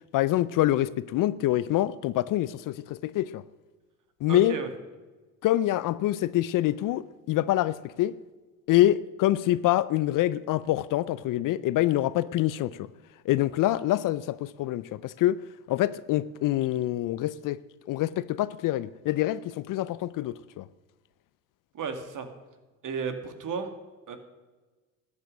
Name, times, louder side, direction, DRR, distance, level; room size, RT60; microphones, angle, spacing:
voice 1, 0.1-3.4 4.2-4.6 5.4-8.1 8.7-12.9 13.3-15.4 15.7-17.6 17.9-20.7, left 14 dB, 50° left, 0.6 m, -26 dB
voice 2, 4.3-4.7 21.7-22.3 22.8-23.7 24.1-24.2, right 5 dB, 45° right, 2.2 m, -33 dB
13.5 x 9.8 x 6.5 m
hypercardioid pair, 75°, 43 cm